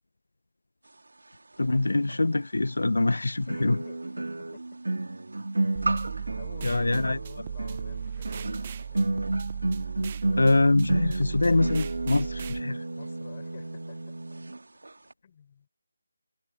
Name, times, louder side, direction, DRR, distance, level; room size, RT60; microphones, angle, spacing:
voice 1, 1.6-3.8 6.6-7.2 10.3-12.8, left 2 dB, 80° left, 0.7 m, -24 dB
sound 1, 2.1-2.2 3.5-14.6 14.8-15.1, right 2 dB, 80° right, 2.0 m, -32 dB
voice 2, 3.5-5.0 5.6-5.8 6.4-9.3 12.8-14.1 15.2-15.7, left 7 dB, 35° left, 6.4 m, -52 dB
sound 2, 5.8-12.6, right 8 dB, 30° right, 0.5 m, -37 dB
figure-of-eight pair, 165°, 0 cm